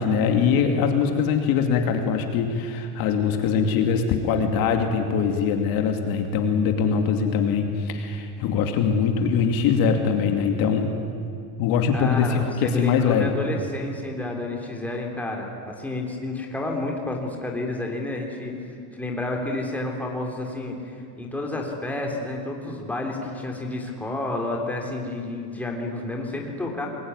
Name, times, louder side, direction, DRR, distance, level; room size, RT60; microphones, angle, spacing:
voice 1, 0.0-10.9 11.6-13.3, left 6 dB, 50° left, 5 dB, 2.6 m, -22 dB
voice 2, 11.9-18.5 18.9-20.8 21.2-26.9, left 2 dB, 5° left, 0 dB, 3.8 m, -30 dB
26.5 x 22.0 x 9.8 m, 2.5 s
supercardioid pair, 150°, 46 cm